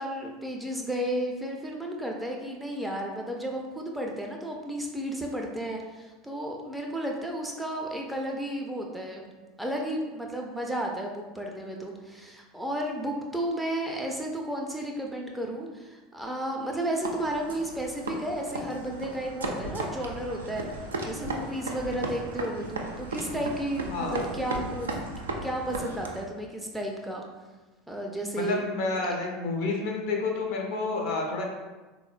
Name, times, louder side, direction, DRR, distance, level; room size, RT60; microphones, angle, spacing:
voice 1, 0.0-9.3 9.6-20.7 21.0-24.9 25.4-27.2 27.9-28.6, right 1 dB, 5° right, 0 dB, 0.4 m, -33 dB
sound 1, 17.0-26.3, right 2 dB, 80° right, 0.3 m, -36 dB
voice 2, 23.9-24.2 28.4-31.4, left 3 dB, 60° left, 0 dB, 0.5 m, -29 dB
3.6 x 2.0 x 2.4 m, 1.2 s
figure-of-eight pair, 75°, 0 cm